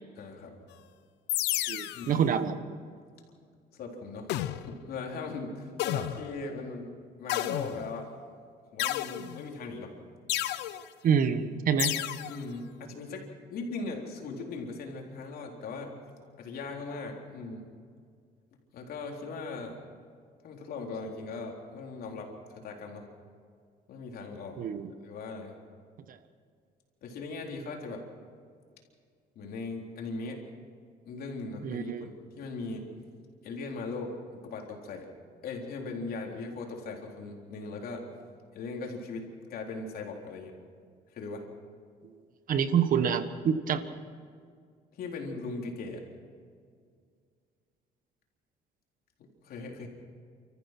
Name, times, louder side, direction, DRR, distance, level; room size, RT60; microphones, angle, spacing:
voice 1, 0.2-0.6 1.9-2.2 3.7-6.9 7.2-8.1 8.7-9.9 12.3-15.9 16.4-17.6 18.7-19.7 20.4-23.1 23.9-24.6 25.0-25.5 27.0-28.0 29.4-30.4 31.1-32.1 32.4-32.9 33.4-35.1 35.4-38.0 38.5-40.5 41.1-41.4 45.0-46.0 49.4-49.9, left 3 dB, 65° left, 1 dB, 3.8 m, -39 dB
sound 1, 1.3-2.1 4.3-4.8 5.8-6.3 7.3-8.0 8.8-9.6 10.3-10.8 11.8-12.4, left 14 dB, 90° left, 0.8 m, -32 dB
voice 2, 1.7-2.6 11.0-11.9 24.6-24.9 26.1-26.2 31.6-32.1 42.5-43.8, right 7 dB, 55° right, 11 dB, 1.3 m, -27 dB
30.0 x 14.0 x 6.1 m, 2.1 s
cardioid pair, 110°, 17 cm